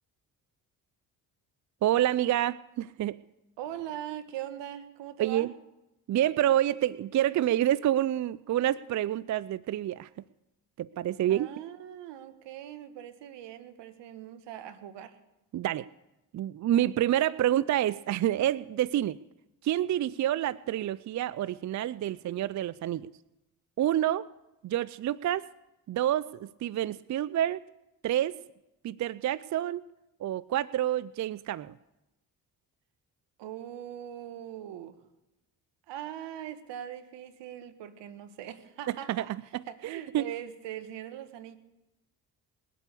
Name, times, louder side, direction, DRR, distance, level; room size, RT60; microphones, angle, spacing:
voice 1, 1.8-3.2 5.2-5.5 6.1-10.1 10.8-11.5 15.5-15.9 16.3-19.2 19.6-23.1 23.8-24.3 24.6-25.5 25.9-27.6 28.0-28.4 28.8-29.8 30.2-31.7 38.9-39.3 39.5-40.2, right 12 dB, 40° right, 19 dB, 0.5 m, -28 dB
voice 2, 3.6-5.5 11.2-15.2 16.7-16.9 33.4-35.0 35.9-39.3 39.7-41.6, right 11 dB, 70° right, 11 dB, 1.4 m, -41 dB
20.5 x 8.4 x 6.8 m, 0.94 s
hypercardioid pair, 50°, 44 cm